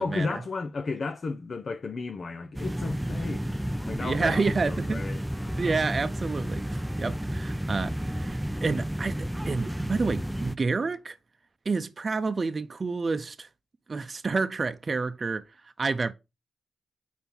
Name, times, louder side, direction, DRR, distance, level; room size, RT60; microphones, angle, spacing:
voice 1, 0.0-5.7, left 4 dB, 55° left, 0.7 m, -34 dB
sound 1, 2.5-10.5, equal, 5° right, 0.5 m, -31 dB
voice 2, 4.0-5.0 5.6-11.2 11.7-13.5 13.9-15.4 15.8-16.1, right 4 dB, 45° right, 0.6 m, -29 dB
4.5 x 4.4 x 5.4 m
supercardioid pair, 40°, 0 cm